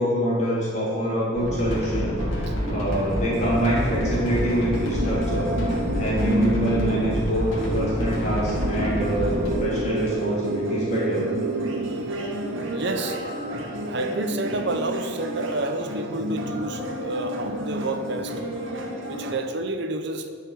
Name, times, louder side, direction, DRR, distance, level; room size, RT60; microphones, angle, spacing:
voice 1, 0.0-2.1 2.7-5.5 5.9-11.2, equal, 35° left, -7 dB, 3.2 m, -25 dB
sound 1, 1.4-9.5, equal, 80° left, 3.1 m, -28 dB
sound 2, 1.4-19.3, equal, 75° right, 1.8 m, -31 dB
sound 3, 7.2-15.3, right 5 dB, 90° right, 0.5 m, -34 dB
voice 2, 11.8-12.3 12.6-13.2 13.9-18.4 19.0-20.3, right 2 dB, 60° right, 7 dB, 0.9 m, -29 dB
11.0 x 6.7 x 6.4 m, 2.1 s
head